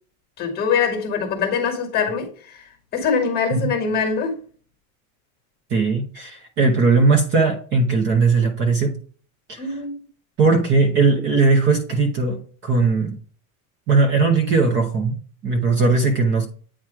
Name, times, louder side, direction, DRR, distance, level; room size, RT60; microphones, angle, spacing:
voice 1, 0.4-4.4 9.6-10.0, left 5 dB, 20° left, 1.5 m, -23 dB
voice 2, 5.7-9.0 9.5-9.6 10.4-13.2 13.9-15.1 15.4-16.5, right 4 dB, 25° right, 0.8 m, -18 dB
8.9 x 3.0 x 4.7 m
supercardioid pair, 170°, 42 cm